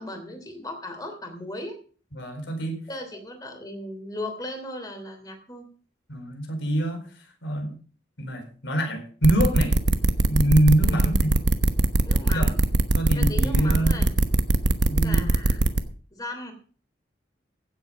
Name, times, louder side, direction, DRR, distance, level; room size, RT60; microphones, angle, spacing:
voice 1, 0.0-1.8 2.9-5.6 10.8-11.1 12.0-12.6 13.2-14.1 15.0-15.6 16.1-16.5, left 1 dB, 20° left, 5 dB, 3.1 m, -37 dB
voice 2, 2.1-2.8 6.1-7.0 7.4-7.8 8.2-9.7 10.3-11.3 12.3-12.5 12.9-14.0 14.6-15.2, right 1 dB, 75° left, 5 dB, 4.4 m, -24 dB
sound 1, 9.2-15.8, right 2 dB, 75° right, 1.1 m, -20 dB
16.0 x 8.1 x 5.2 m, 0.41 s
head